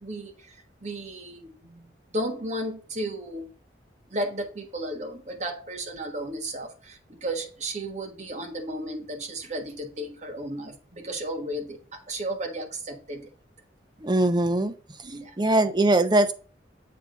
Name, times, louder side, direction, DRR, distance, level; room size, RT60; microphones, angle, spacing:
voice 1, 0.0-3.5 4.1-13.3 15.0-15.4, right 1 dB, 40° right, 3 dB, 1.4 m, -34 dB
voice 2, 14.0-14.7 15.4-16.3, right 2 dB, 25° right, 9 dB, 0.6 m, -21 dB
7.6 x 3.5 x 5.0 m, 0.38 s
head